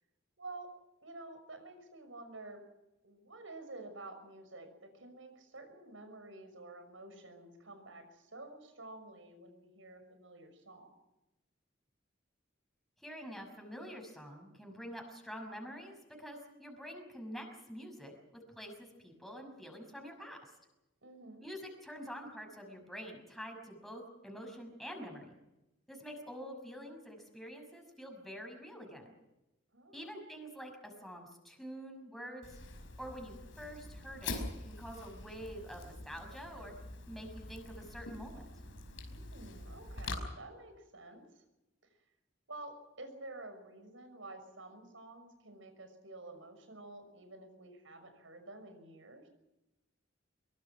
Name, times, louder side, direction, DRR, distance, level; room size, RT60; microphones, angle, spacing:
voice 1, 0.4-0.7 1.0-2.6 3.0-11.0 21.0-21.4 29.7-30.0 39.1-41.4 42.5-49.3, right 2 dB, 90° right, 7 dB, 6.3 m, -50 dB
voice 2, 13.0-20.5 21.4-25.3 25.9-29.1 29.9-32.6 33.0-36.7 37.1-38.4, equal, ahead, 2 dB, 6.0 m, -47 dB
Fire, 32.4-40.2, left 2 dB, 75° left, 5.3 m, -45 dB
23.5 x 23.5 x 6.1 m, 0.97 s
head